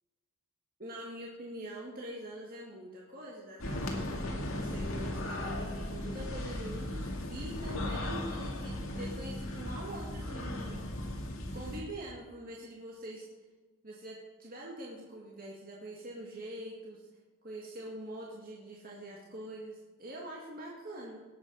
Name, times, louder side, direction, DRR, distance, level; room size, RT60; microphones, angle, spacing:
voice 1, 0.8-10.8 11.5-13.2 13.8-17.1 17.4-21.2, right 1 dB, 40° right, -3 dB, 1.9 m, -44 dB
sound 1, 3.6-11.8, left 1 dB, 70° left, 2.1 m, -37 dB
18.5 x 7.9 x 5.4 m, 1.3 s
head